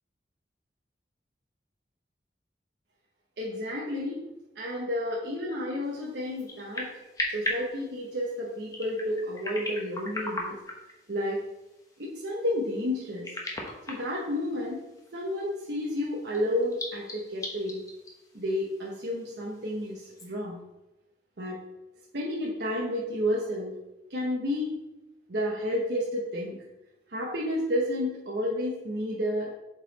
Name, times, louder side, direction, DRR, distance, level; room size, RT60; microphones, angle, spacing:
voice 1, 3.4-4.2 4.6-6.9 7.3-10.6 11.1-11.4 12.0-13.3 13.9-14.8 15.1-17.8 18.3-20.6 21.4-21.6 22.1-23.8 24.1-24.8 25.3-26.6 27.1-29.5, left 1 dB, 70° right, -4 dB, 1.0 m, -31 dB
sound 1, 5.8-20.3, left 1 dB, 20° left, 1.0 m, -40 dB
7.5 x 4.0 x 4.1 m, 0.96 s
head